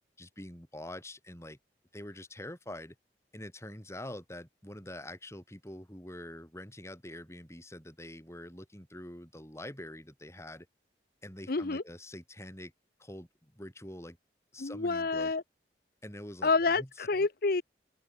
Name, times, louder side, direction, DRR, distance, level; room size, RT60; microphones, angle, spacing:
voice 1, 0.2-1.6 1.9-3.0 3.3-10.7 11.2-12.7 13.0-14.2 14.5-15.3 16.0-16.5 16.8-16.9, left 1 dB, 15° left, 7.8 m, -45 dB
voice 2, 11.5-11.8 14.6-15.4 16.4-17.6, left 3 dB, 55° left, 0.8 m, -28 dB
open air
head